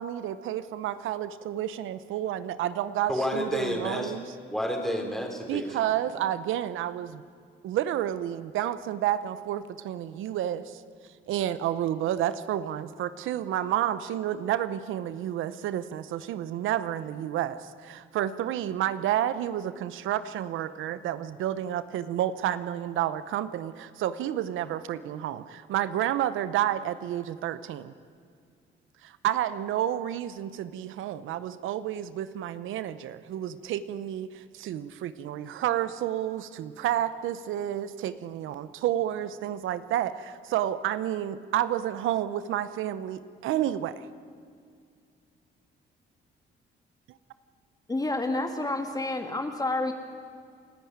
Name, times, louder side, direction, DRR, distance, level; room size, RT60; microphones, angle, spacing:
voice 1, 0.0-4.2 5.5-7.2 7.6-10.8 11.3-27.9 29.0-44.1, right 11 dB, 85° right, 14 dB, 0.8 m, -30 dB
voice 2, 3.1-4.1 4.5-5.9, equal, ahead, 2 dB, 4.3 m, -30 dB
voice 3, 47.9-49.9, left 2 dB, 20° left, 5 dB, 1.9 m, -29 dB
29.5 x 10.5 x 9.5 m, 2.2 s
cardioid pair, 90°, 20 cm